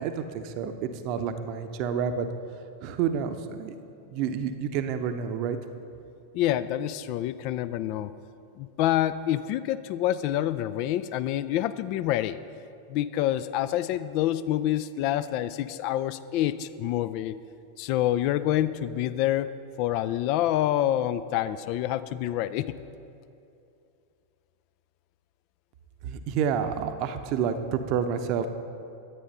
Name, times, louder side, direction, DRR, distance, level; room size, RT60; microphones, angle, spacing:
voice 1, 0.0-2.3 2.8-3.7 4.1-5.6 26.0-28.5, right 7 dB, 40° right, 8 dB, 0.7 m, -29 dB
voice 2, 6.3-8.1 8.6-12.4 12.9-17.4 17.8-19.5 19.8-22.7, left 12 dB, 45° left, 14 dB, 0.3 m, -27 dB
11.0 x 8.7 x 5.4 m, 2.6 s
figure-of-eight pair, 90°, 0 cm